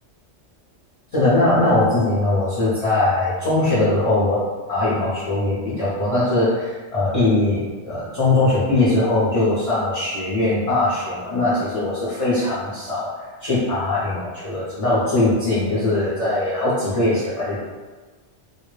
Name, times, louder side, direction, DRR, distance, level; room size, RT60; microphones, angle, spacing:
voice 1, 1.1-13.1 13.4-17.6, left 2 dB, 35° left, -11 dB, 0.6 m, -20 dB
2.2 x 2.1 x 3.1 m, 1.3 s
omnidirectional pair, 1.2 m